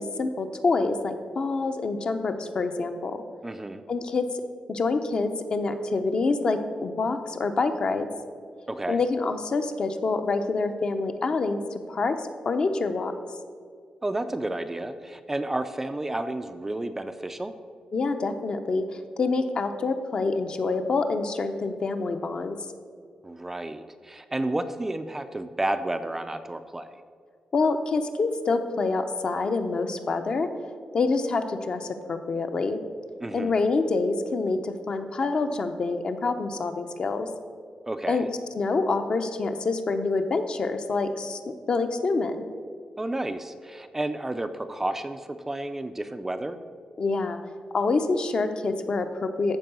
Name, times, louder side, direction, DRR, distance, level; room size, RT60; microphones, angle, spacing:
voice 1, 0.0-3.2 3.9-4.3 4.7-8.1 8.9-13.1 17.9-22.6 27.5-30.5 30.9-32.8 33.3-37.3 38.1-38.3 38.5-41.4 41.7-42.5 47.0-47.4 47.7-49.6, left 3 dB, 40° left, 7 dB, 0.7 m, -26 dB
voice 2, 3.4-3.8 8.7-9.0 14.0-17.5 23.2-27.0 33.2-33.5 37.9-38.3 43.0-46.6, right 1 dB, 15° right, 8 dB, 0.4 m, -31 dB
13.5 x 4.6 x 6.8 m, 2.1 s
wide cardioid pair, 170°, 2 cm